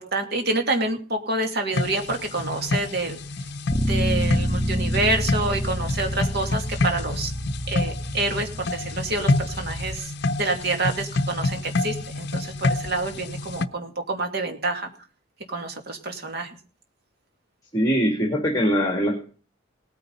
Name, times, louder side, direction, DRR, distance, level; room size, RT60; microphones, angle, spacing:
voice 1, 0.0-3.2 3.8-7.3 7.7-10.1 10.4-14.9 15.5-16.6, right 2 dB, 55° right, 3 dB, 2.6 m, -27 dB
sound 1, 1.7-13.7, left 2 dB, 55° left, 0.7 m, -28 dB
Bass guitar, 3.7-9.9, equal, 10° right, 1.1 m, -28 dB
voice 2, 17.7-19.2, equal, 20° left, 0 dB, 2.7 m, -22 dB
19.0 x 9.5 x 4.1 m, 0.39 s
head